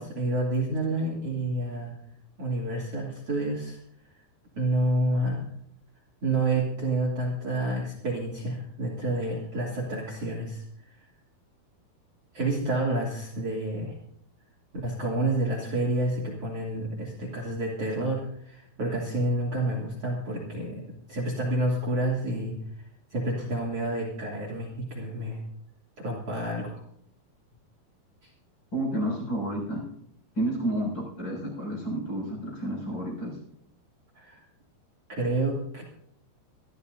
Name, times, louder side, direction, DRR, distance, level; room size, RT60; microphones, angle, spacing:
voice 1, 0.0-1.9 2.4-3.8 4.5-5.4 6.2-11.1 12.3-14.0 14.8-22.6 23.1-25.4 26.0-26.8 28.2-28.3 34.1-34.4 35.1-35.8, right 1 dB, 40° right, -1 dB, 3.3 m, -29 dB
voice 2, 28.7-29.8 30.3-33.4, right 1 dB, 25° left, -3 dB, 6.9 m, -30 dB
25.0 x 13.5 x 2.7 m, 0.70 s
omnidirectional pair, 5.0 m